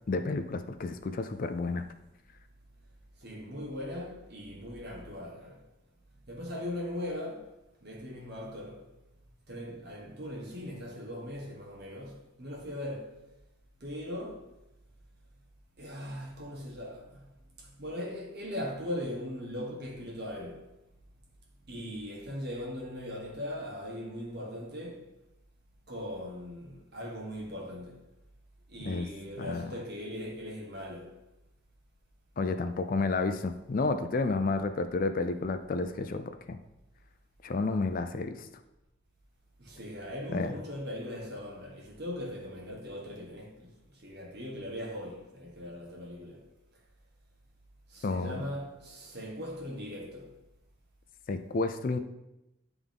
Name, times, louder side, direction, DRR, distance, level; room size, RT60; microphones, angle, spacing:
voice 1, 0.1-1.8 28.9-29.1 29.4-29.7 32.4-36.6 37.4-38.5 40.3-40.5 48.0-48.4 51.3-52.0, left 3 dB, 40° left, 0.4 m, -31 dB
voice 2, 3.2-5.6 6.3-8.9 9.5-13.2 13.8-14.5 15.8-17.3 17.6-20.7 21.7-25.1 25.9-28.0 28.7-31.2 39.6-46.5 47.9-50.3, left 1 dB, 50° right, 1.3 m, -40 dB
9.7 x 3.5 x 3.6 m
head